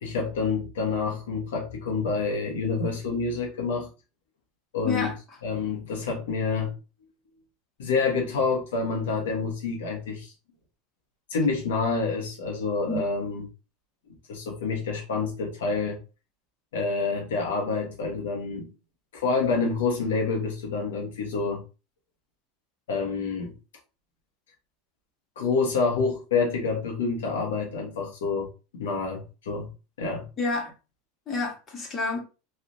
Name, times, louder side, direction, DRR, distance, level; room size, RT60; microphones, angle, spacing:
voice 1, 0.0-3.9 4.7-5.1 5.4-6.7 7.8-10.3 11.3-13.5 14.3-16.0 16.7-18.7 19.1-21.6 22.9-23.5 25.4-29.7 30.0-30.3, left 4 dB, 85° left, 0 dB, 1.3 m, -27 dB
voice 2, 30.4-30.7 31.3-32.2, left 3 dB, 35° left, 1 dB, 1.3 m, -28 dB
3.2 x 2.7 x 2.7 m, 0.32 s
supercardioid pair, 110°, 0 cm